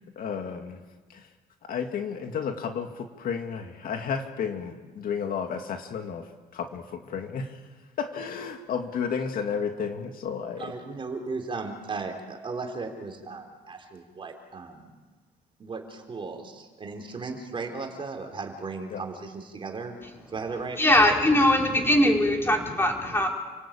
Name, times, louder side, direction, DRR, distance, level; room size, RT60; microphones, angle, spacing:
voice 1, 0.2-0.8 1.1-1.2 1.7-6.2 6.5-7.5 8.0-10.6 18.9-19.0, left 6 dB, 60° left, 5 dB, 2.4 m, -32 dB
voice 2, 10.6-14.9 15.6-20.0 20.3-20.8, right 4 dB, 30° right, 4 dB, 4.1 m, -36 dB
voice 3, 20.8-23.3, left 1 dB, 15° left, 1 dB, 4.8 m, -21 dB
29.5 x 17.5 x 8.9 m, 1.4 s
cardioid pair, 110°, 17 cm